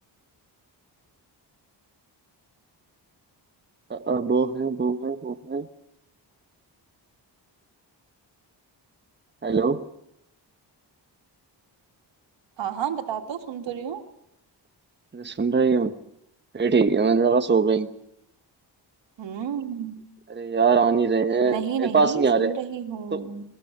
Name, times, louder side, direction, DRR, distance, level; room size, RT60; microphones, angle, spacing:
voice 1, 3.9-5.6 9.4-9.8 15.1-15.9 16.5-17.9 20.3-22.5 23.1-23.2, right 5 dB, 25° right, 8 dB, 1.2 m, -22 dB
voice 2, 12.6-14.0 19.2-20.0 21.4-23.4, right 8 dB, 90° right, 5 dB, 2.4 m, -31 dB
23.0 x 21.5 x 6.7 m, 0.79 s
cardioid pair, 110°, 42 cm